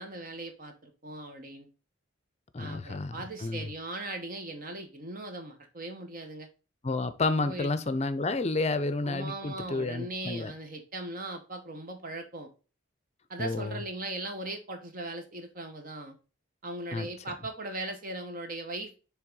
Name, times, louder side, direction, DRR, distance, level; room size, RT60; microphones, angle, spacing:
voice 1, 0.0-1.7 2.6-6.5 7.4-7.7 9.0-12.5 13.3-16.1 16.6-19.0, right 2 dB, 45° right, 0.9 m, -39 dB
voice 2, 2.5-3.7 6.8-10.5 13.4-13.8 16.9-17.1, left 3 dB, 30° left, 0.6 m, -30 dB
7.5 x 3.5 x 3.7 m
head